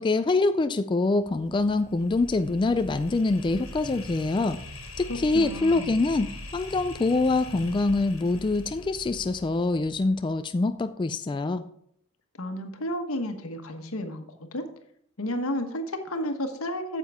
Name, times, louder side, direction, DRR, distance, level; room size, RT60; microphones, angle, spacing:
voice 1, 0.0-4.6 5.0-11.6, left 3 dB, 20° left, 10 dB, 0.3 m, -25 dB
sound 1, 1.2-10.3, left 2 dB, 70° left, 2.0 m, -42 dB
voice 2, 5.1-6.0 12.4-14.6 15.2-17.0, left 1 dB, 85° left, 6 dB, 1.2 m, -32 dB
9.2 x 7.3 x 3.5 m, 0.69 s
head